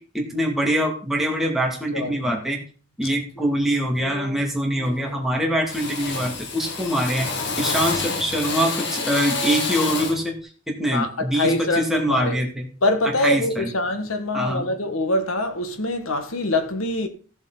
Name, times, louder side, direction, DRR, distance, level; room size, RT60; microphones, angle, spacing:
voice 1, 0.1-2.6 3.0-12.7 13.0-13.7 14.3-14.7, equal, ahead, 2.2 m, -24 dB
voice 2, 1.9-2.4 10.9-12.4 12.8-17.1, left 2 dB, 80° left, 1.5 m, -24 dB
Drill, 3.3-3.6 4.0-4.5 4.7-5.3 5.7-10.3, left 3 dB, 55° left, 1.8 m, -29 dB
15.5 x 7.3 x 4.0 m
head